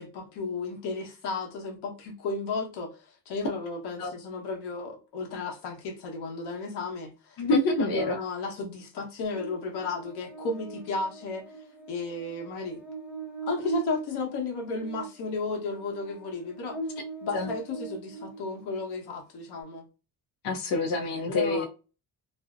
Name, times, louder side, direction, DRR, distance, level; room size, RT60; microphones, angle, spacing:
voice 1, 0.0-7.4 7.8-11.4 11.9-12.8 13.4-16.8 17.2-19.8 21.3-21.7, left 3 dB, 90° left, 0.9 m, -34 dB
voice 2, 7.4-8.2 17.3-17.5 20.4-21.7, left 2 dB, 60° left, 0.6 m, -26 dB
Buzz, 9.3-18.8, right 4 dB, 5° right, 0.4 m, -40 dB
2.5 x 2.0 x 2.4 m
cardioid pair, 140°, 39 cm